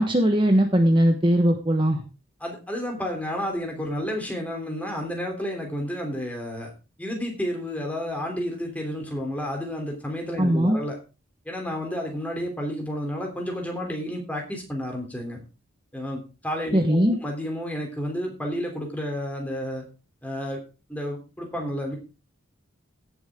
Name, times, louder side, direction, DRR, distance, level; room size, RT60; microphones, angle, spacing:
voice 1, 0.0-2.0 10.4-10.8 16.7-17.2, equal, 25° right, 4 dB, 1.2 m, -20 dB
voice 2, 2.4-6.7 7.0-11.0 11.4-15.4 15.9-19.9 20.2-20.6 20.9-22.0, equal, 10° left, 1 dB, 3.3 m, -31 dB
17.0 x 7.2 x 3.7 m, 0.32 s
head